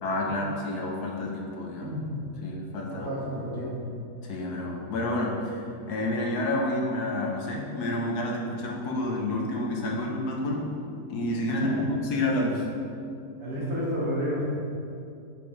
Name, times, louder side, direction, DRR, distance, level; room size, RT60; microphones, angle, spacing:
voice 1, 0.0-1.9 2.4-3.1 4.2-10.7 11.1-12.7, left 1 dB, 75° left, -1 dB, 1.5 m, -29 dB
voice 2, 2.9-3.8 11.5-11.8 13.4-14.5, equal, 65° right, -7 dB, 2.4 m, -31 dB
9.4 x 5.4 x 3.2 m, 2.5 s
omnidirectional pair, 1.7 m